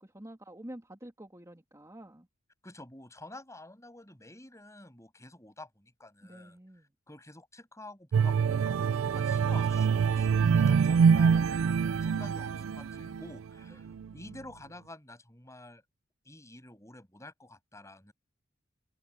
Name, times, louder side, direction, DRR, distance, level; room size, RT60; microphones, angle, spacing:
voice 1, 0.0-2.3 6.2-6.9 13.7-13.8, right 1 dB, 15° right, 2.7 m, -49 dB
voice 2, 2.6-6.6 7.1-15.8 16.2-18.1, left 1 dB, 15° left, 7.3 m, -49 dB
sound 1, 8.1-13.4 13.9-14.1, right 6 dB, 85° right, 0.4 m, -25 dB
head